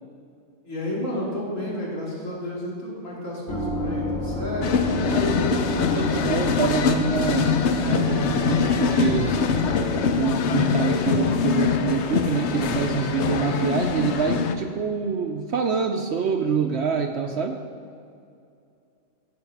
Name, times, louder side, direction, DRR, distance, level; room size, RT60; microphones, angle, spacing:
voice 1, 0.6-5.5, left 1 dB, 85° left, -5 dB, 3.1 m, -31 dB
sound 1, 3.5-10.1, left 1 dB, 5° left, 0.9 m, -30 dB
sound 2, 4.6-14.6, left 6 dB, 65° left, 0.9 m, -23 dB
voice 2, 5.7-9.4 10.1-17.6, right 6 dB, 65° right, 5 dB, 0.8 m, -26 dB
15.5 x 5.2 x 5.9 m, 2.5 s
omnidirectional pair, 1.3 m